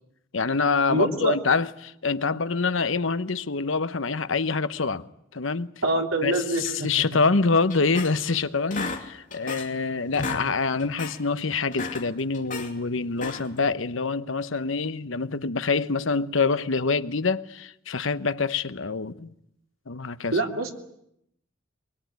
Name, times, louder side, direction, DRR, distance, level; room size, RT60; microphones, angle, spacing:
voice 1, 0.3-5.1 5.3-5.7 6.2-19.3 19.9-20.4, left 4 dB, 65° left, 1.0 m, -26 dB
voice 2, 0.9-1.4 5.8-7.0 20.3-20.7, right 2 dB, 85° right, 3.3 m, -25 dB
sound 1, 7.7-8.4 8.7-9.8 10.1-10.5 10.8-11.2 11.6-12.7 13.1-13.6, left 4 dB, 40° left, 2.8 m, -34 dB
23.0 x 22.5 x 9.4 m
head